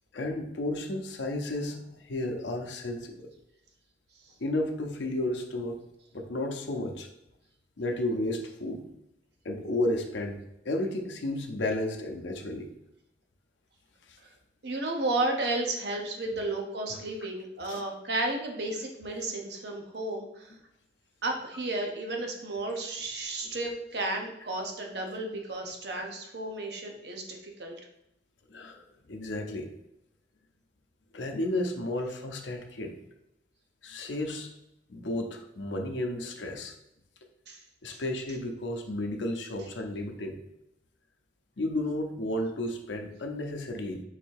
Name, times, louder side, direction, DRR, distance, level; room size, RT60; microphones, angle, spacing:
voice 1, 0.1-1.8 2.1-3.3 4.4-5.8 6.1-7.1 7.8-8.8 9.4-10.4 10.6-12.7 16.9-17.0 17.7-17.8 28.5-29.7 31.1-32.9 33.8-34.5 34.9-36.7 37.8-40.4 41.6-44.0, left 1 dB, 85° left, 4 dB, 0.7 m, -32 dB
voice 2, 14.6-20.5 21.2-27.8 37.5-37.6 37.9-38.0, right 2 dB, 65° right, 2 dB, 0.8 m, -33 dB
3.9 x 2.7 x 4.6 m, 0.84 s
head